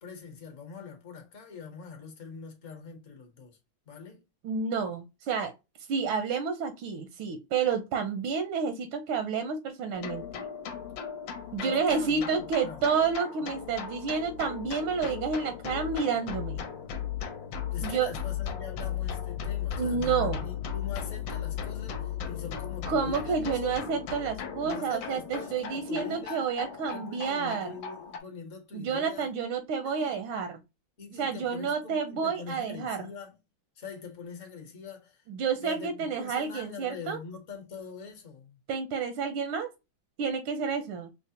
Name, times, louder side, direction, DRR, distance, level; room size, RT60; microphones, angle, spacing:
voice 1, 0.0-3.6 3.9-4.2 11.6-12.8 13.4-13.5 17.7-23.8 24.6-26.5 26.9-29.3 29.8-30.2 31.0-33.4 33.8-35.2 35.5-38.6, left 5 dB, 50° left, 1.1 m, -43 dB
voice 2, 4.4-5.5 5.9-10.4 11.5-16.6 17.8-18.1 19.8-20.5 22.9-27.7 28.7-30.6 31.2-33.0 35.3-37.2 38.7-39.7 40.2-41.1, right 5 dB, 85° right, 1.5 m, -30 dB
sound 1, 9.9-28.2, left 8 dB, 70° left, 1.3 m, -36 dB
5.4 x 2.1 x 2.7 m
omnidirectional pair, 2.3 m